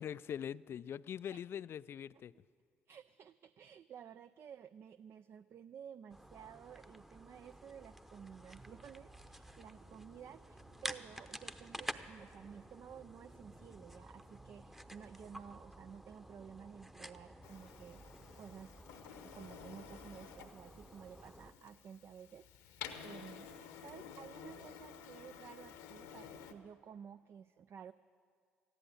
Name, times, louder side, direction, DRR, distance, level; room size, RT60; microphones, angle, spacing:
voice 1, 0.0-2.3, left 9 dB, 50° left, 0.3 m, -42 dB
voice 2, 2.9-18.1 18.3-18.8 19.2-27.9, right 8 dB, 50° right, 0.4 m, -53 dB
sound 1, 6.1-21.5, equal, 5° right, 0.8 m, -51 dB
sound 2, 9.7-14.7, right 4 dB, 75° right, 3.7 m, -70 dB
Printer, 17.4-26.5, left 8 dB, 75° left, 1.0 m, -52 dB
14.5 x 10.5 x 8.5 m
hypercardioid pair, 50°, 5 cm